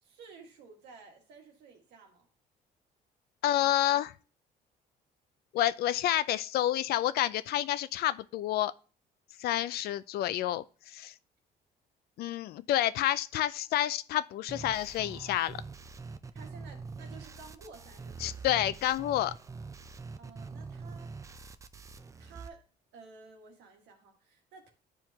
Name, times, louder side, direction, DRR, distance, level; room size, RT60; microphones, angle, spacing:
voice 1, 0.0-2.3 16.3-18.5 20.2-21.4 22.2-22.7 22.9-24.7, right 4 dB, 85° right, 1.7 m, -53 dB
voice 2, 3.4-4.1 5.5-8.7 9.4-11.1 12.2-15.6 18.2-19.3, left 13 dB, 70° left, 0.4 m, -29 dB
sound 1, 14.5-22.5, right 4 dB, 20° right, 0.4 m, -44 dB
10.5 x 4.5 x 2.8 m
cardioid pair, 110°, 17 cm